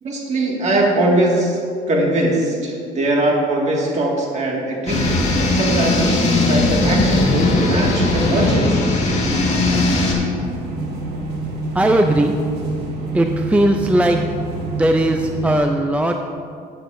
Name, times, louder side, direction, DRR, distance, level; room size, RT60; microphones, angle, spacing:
voice 1, 0.0-1.6 1.9-8.9, right 1 dB, 40° right, -2 dB, 2.0 m, -21 dB
sound 1, 4.9-10.1, left 2 dB, 40° left, 2.0 m, -18 dB
sound 2, 10.4-15.6, right 2 dB, 75° right, 1.4 m, -27 dB
voice 2, 11.7-12.4 13.1-14.2 14.6-16.2, right 1 dB, 10° right, 4 dB, 0.4 m, -18 dB
13.0 x 8.0 x 2.6 m, 2.3 s
cardioid pair, 110°, 17 cm